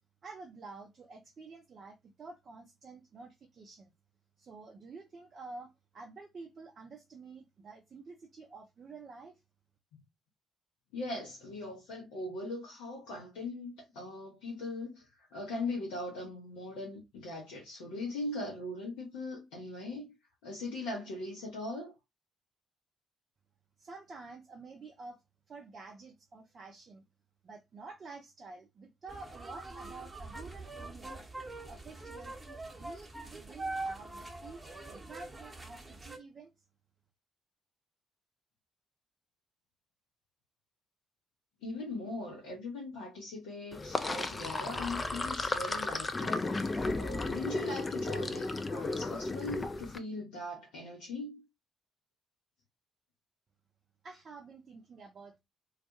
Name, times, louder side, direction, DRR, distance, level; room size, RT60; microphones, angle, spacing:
voice 1, 0.2-3.9 4.4-9.4 23.8-27.0 27.4-31.3 31.7-32.4 32.7-36.5 54.0-55.4, right 3 dB, 40° right, 0.4 m, -50 dB
voice 2, 10.9-20.1 20.4-21.9 41.6-51.4, left 2 dB, 65° left, 0.6 m, -40 dB
sound 1, 29.1-36.2, right 2 dB, 20° right, 0.9 m, -43 dB
Sink (filling or washing), 43.7-50.0, left 2 dB, 25° left, 0.3 m, -34 dB
2.3 x 2.1 x 2.7 m
figure-of-eight pair, 45°, 0 cm